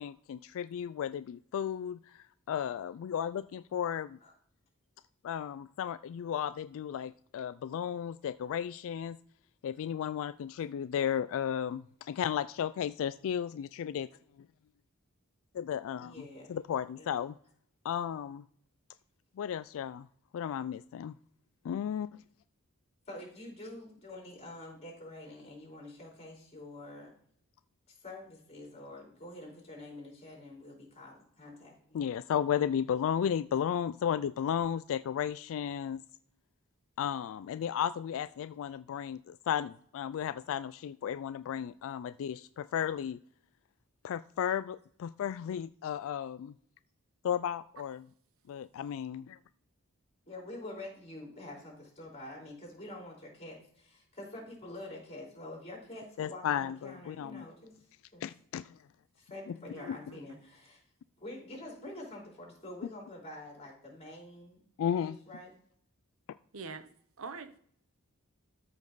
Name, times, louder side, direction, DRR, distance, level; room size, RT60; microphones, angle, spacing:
voice 1, 0.0-4.2 5.2-9.2 9.6-14.1 15.6-16.1 16.5-17.4 17.8-18.4 19.4-20.1 20.3-21.1 21.6-22.2 31.9-36.0 37.0-43.2 44.0-46.5 47.2-48.0 48.5-49.4 56.2-57.4 58.2-58.7 59.5-59.6 64.8-65.2, left 9 dB, 65° left, 14 dB, 0.3 m, -34 dB
voice 2, 16.0-16.6 17.0-17.1 23.1-27.1 27.9-32.2 50.3-58.3 59.2-60.8 61.2-64.6 65.0-65.5, left 1 dB, 30° left, -2 dB, 4.1 m, -47 dB
voice 3, 59.7-60.2 66.5-66.9 67.2-67.6, right 4 dB, 65° right, 10 dB, 0.8 m, -44 dB
13.5 x 5.3 x 3.9 m, 0.62 s
head